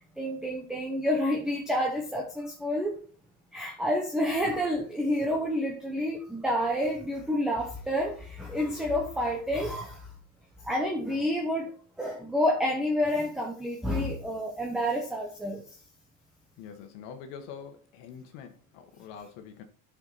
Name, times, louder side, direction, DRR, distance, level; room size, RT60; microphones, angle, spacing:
voice 1, 0.2-2.9 3.5-10.1 10.6-15.6, equal, ahead, 1.0 m, -29 dB
voice 2, 16.6-19.6, left 7 dB, 65° left, 1.6 m, -45 dB
10.5 x 6.3 x 4.2 m
cardioid pair, 160°, 40 cm